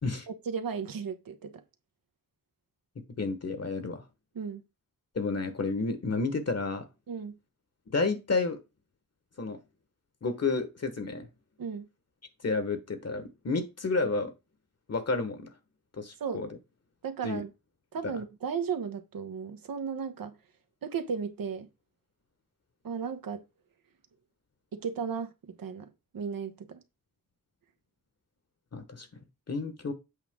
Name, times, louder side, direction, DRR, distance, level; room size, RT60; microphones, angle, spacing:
voice 1, 0.3-1.6 4.3-4.6 7.1-7.4 11.6-11.9 16.2-16.4 17.0-17.5 17.9-20.4 20.8-21.7 22.8-23.4 24.7-26.8, right 6 dB, 80° right, 1.1 m, -35 dB
voice 2, 3.2-4.0 5.1-6.8 7.9-8.6 9.4-9.6 10.2-11.3 12.4-14.3 14.9-15.5 15.9-16.5 17.2-17.4 18.0-18.1 28.7-29.1 29.5-29.9, left 3 dB, 45° left, 1.3 m, -30 dB
8.2 x 5.2 x 3.6 m
wide cardioid pair, 80°, 34 cm